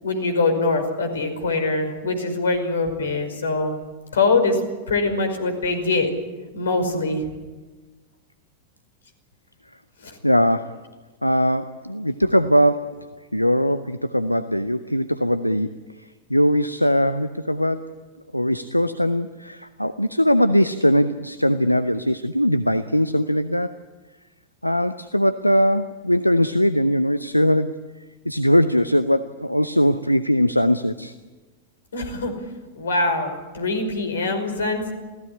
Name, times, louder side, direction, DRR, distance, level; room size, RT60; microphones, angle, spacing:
voice 1, 0.0-3.8 4.1-4.6 4.9-6.1 6.5-7.2 10.0-10.2 31.9-32.3 32.7-34.9, left 3 dB, 70° left, 8 dB, 5.4 m, -23 dB
voice 2, 10.2-10.8 11.2-13.1 13.3-18.0 18.3-23.7 24.6-27.8 28.2-31.1, equal, 90° left, 12 dB, 0.8 m, -20 dB
28.0 x 17.5 x 10.0 m, 1.3 s
figure-of-eight pair, 90°, 0 cm